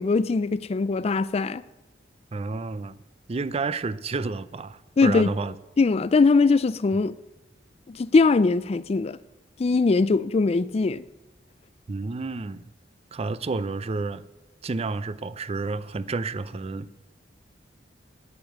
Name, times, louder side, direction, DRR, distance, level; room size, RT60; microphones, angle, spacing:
voice 1, 0.0-1.6 5.0-5.3 5.8-7.1 7.9-9.2 9.6-11.0, left 4 dB, 35° left, 0.4 m, -21 dB
voice 2, 2.3-3.0 3.3-5.6 11.9-12.7 13.1-14.2 14.6-16.9, right 3 dB, 35° right, 0.4 m, -30 dB
9.5 x 9.0 x 7.8 m
head